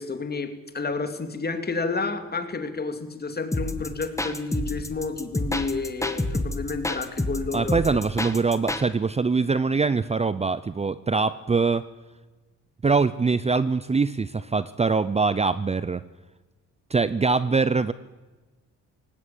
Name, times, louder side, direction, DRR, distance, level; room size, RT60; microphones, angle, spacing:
voice 1, 0.0-7.8, left 4 dB, 30° left, 9 dB, 2.7 m, -30 dB
sound 1, 3.5-8.8, left 1 dB, 10° left, 1.8 m, -28 dB
voice 2, 7.5-11.8 12.8-16.0 16.9-17.9, right 4 dB, 20° right, 16 dB, 0.7 m, -23 dB
18.5 x 16.0 x 9.2 m, 1.2 s
cardioid pair, 90°, 30 cm